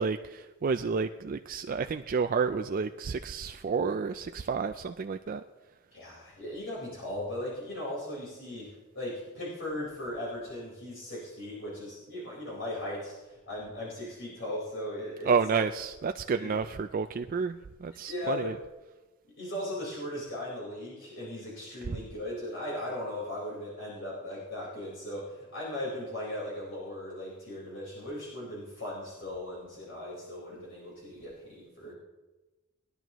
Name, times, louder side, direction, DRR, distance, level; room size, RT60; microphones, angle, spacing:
voice 1, 0.0-5.4 15.3-18.6 21.9-22.0, right 5 dB, 45° right, 8 dB, 0.4 m, -30 dB
voice 2, 5.9-15.6 16.3-16.5 18.1-18.5 19.4-32.0, left 1 dB, 70° left, -6 dB, 4.4 m, -38 dB
21.0 x 11.0 x 3.0 m, 1.1 s
head